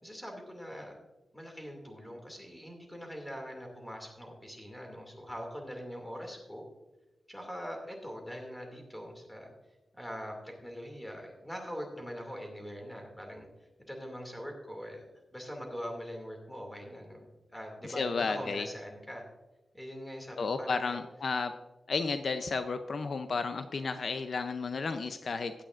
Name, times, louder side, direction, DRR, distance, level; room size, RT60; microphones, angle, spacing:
voice 1, 0.0-0.9 1.3-6.6 7.3-9.5 9.9-13.5 13.9-15.1 15.3-19.2 19.7-21.0, equal, 5° left, 2 dB, 2.4 m, -42 dB
voice 2, 17.8-18.7 20.4-21.5 21.9-25.5, left 4 dB, 60° left, 9 dB, 0.5 m, -32 dB
15.5 x 10.0 x 2.5 m, 1.1 s
wide cardioid pair, 130°, 0 cm